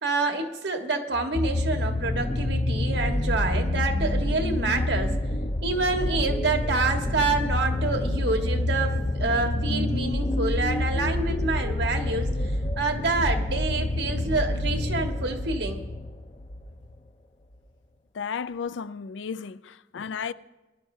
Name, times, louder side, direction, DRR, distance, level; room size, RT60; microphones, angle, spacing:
voice 1, 0.0-5.2 5.6-15.8, right 3 dB, 70° right, 1.5 m, -27 dB
sound 1, 1.1-16.7 17.5-17.6, left 1 dB, 30° left, 0.6 m, -27 dB
voice 2, 18.1-20.3, left 6 dB, 90° left, 0.4 m, -33 dB
22.0 x 11.5 x 2.7 m
head